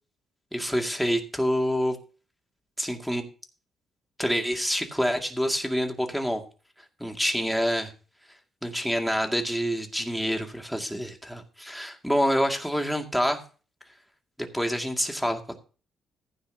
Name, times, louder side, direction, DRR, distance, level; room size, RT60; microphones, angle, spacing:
voice 1, 0.5-2.0 2.8-3.2 4.2-6.4 7.0-7.9 8.6-13.4 14.4-15.6, equal, ahead, 3 dB, 2.2 m, -27 dB
14.5 x 9.7 x 2.8 m, 0.37 s
cardioid pair, 90°, 0 cm